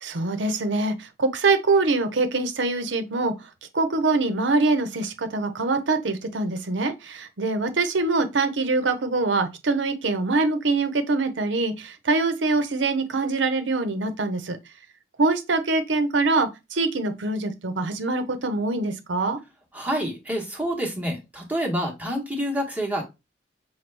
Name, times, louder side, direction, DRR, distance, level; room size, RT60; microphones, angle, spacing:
voice 1, 0.0-3.3 3.7-14.6 15.2-19.4, right 3 dB, 90° right, 0.8 m, -24 dB
voice 2, 19.7-23.0, equal, 10° right, 1.1 m, -28 dB
6.0 x 2.2 x 3.3 m
head